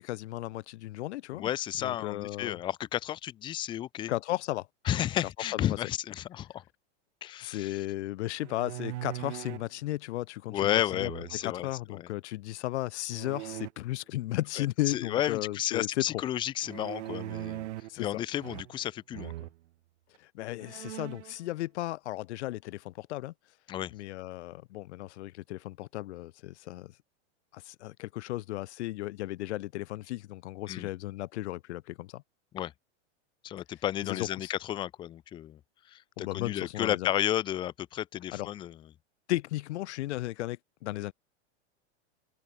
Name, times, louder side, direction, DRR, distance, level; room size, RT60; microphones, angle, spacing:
voice 1, 0.0-1.5 1.8-2.6 4.1-4.7 5.7-5.8 7.4-11.1 11.4-16.0 17.9-18.2 20.2-23.3 23.9-26.9 27.5-32.2 34.1-34.5 36.2-37.1 38.3-38.5 39.3-41.1, left 16 dB, 70° left, 1.0 m, -35 dB
voice 2, 1.3-4.1 4.9-6.6 7.2-7.8 10.5-12.1 14.6-17.7 18.0-19.3 23.7-23.9 30.7-30.9 32.5-32.7 33.4-35.6 35.9-38.8, left 12 dB, 15° left, 0.5 m, -32 dB
sound 1, 8.4-9.7 10.9-11.6 13.1-13.7 16.6-18.0 18.4-18.9 19.1-19.5 20.2-20.3 20.6-21.3, right 15 dB, 80° right, 1.0 m, -40 dB
supercardioid pair, 155°, 35 cm